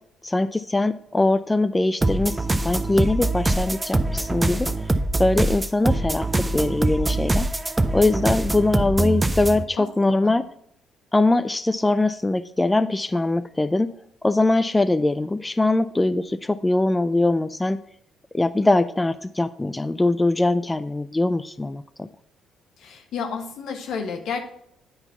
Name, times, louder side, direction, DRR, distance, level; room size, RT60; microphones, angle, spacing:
voice 1, 0.2-4.7 5.2-7.5 7.9-10.4 11.1-13.9 14.2-17.8 18.3-22.1, left 2 dB, 15° left, 12 dB, 0.4 m, -22 dB
sound 1, 2.0-9.6, right 2 dB, 20° right, 0.7 m, -23 dB
voice 2, 9.8-10.4 22.8-24.4, left 6 dB, 70° left, 4 dB, 1.3 m, -31 dB
8.9 x 4.0 x 5.7 m, 0.72 s
hypercardioid pair, 55°, 0 cm